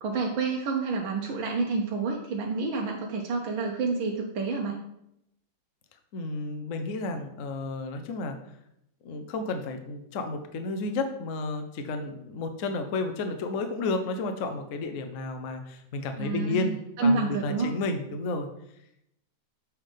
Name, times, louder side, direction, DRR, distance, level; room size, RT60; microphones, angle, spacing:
voice 1, 0.0-4.8 16.2-17.7, right 4 dB, 75° right, 0 dB, 1.5 m, -28 dB
voice 2, 6.1-8.4 9.0-18.5, left 3 dB, 60° left, 6 dB, 0.8 m, -32 dB
7.3 x 3.7 x 5.1 m, 0.78 s
omnidirectional pair, 2.2 m